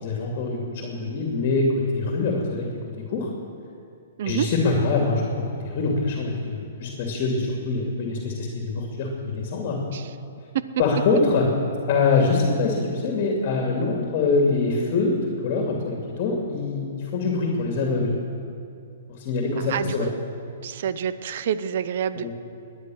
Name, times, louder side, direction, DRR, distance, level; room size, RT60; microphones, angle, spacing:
voice 1, 0.0-2.7 3.1-3.3 4.2-5.2 5.6-9.8 10.8-11.5 11.9-15.2 15.4-18.1 19.2-20.1 22.2-22.3, left 3 dB, 45° left, 1 dB, 2.7 m, -24 dB
voice 2, 19.6-20.1 20.6-22.3, right 9 dB, 60° right, 14 dB, 0.7 m, -28 dB
19.5 x 10.0 x 6.5 m, 2.6 s
hypercardioid pair, 130°, 0 cm